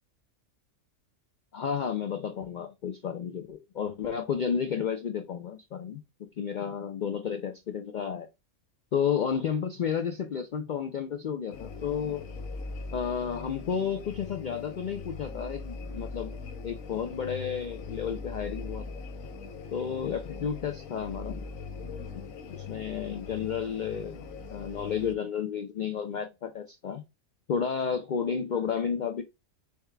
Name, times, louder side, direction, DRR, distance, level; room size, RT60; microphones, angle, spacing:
voice 1, 1.5-8.3 8.9-12.3 12.9-16.3 16.6-18.9 19.7-21.4 22.5-27.0 27.5-29.2, left 7 dB, 65° left, 0.4 m, -32 dB
sound 1, 11.5-25.1, left 4 dB, 90° left, 1.1 m, -41 dB
4.2 x 3.6 x 3.3 m
omnidirectional pair, 1.4 m